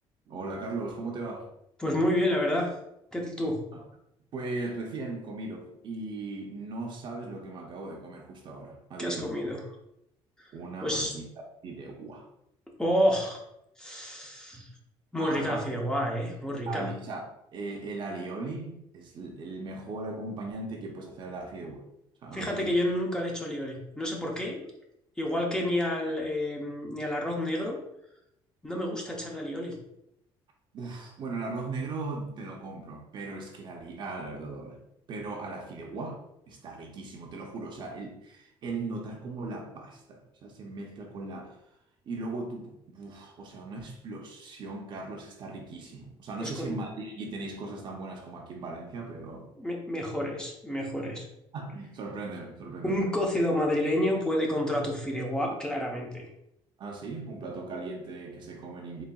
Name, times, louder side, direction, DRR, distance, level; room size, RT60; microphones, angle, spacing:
voice 1, 0.3-1.5 3.7-3.8 4.3-9.3 10.5-12.3 15.2-15.6 16.7-17.3 17.5-21.9 22.2-22.8 30.7-34.8 35.1-41.6 42.1-49.5 51.5-53.0 56.8-59.0, right 3 dB, 50° right, 0.7 m, -38 dB
voice 2, 1.8-2.7 3.1-3.6 9.0-9.6 10.4-10.5 10.8-11.1 12.8-13.4 13.8-14.7 15.1-16.9 22.3-24.6 25.2-27.8 28.6-29.7 46.4-46.7 49.6-51.3 52.8-56.3, left 1 dB, 5° left, 0.7 m, -29 dB
4.0 x 3.3 x 2.3 m
cardioid pair, 125°, 10 cm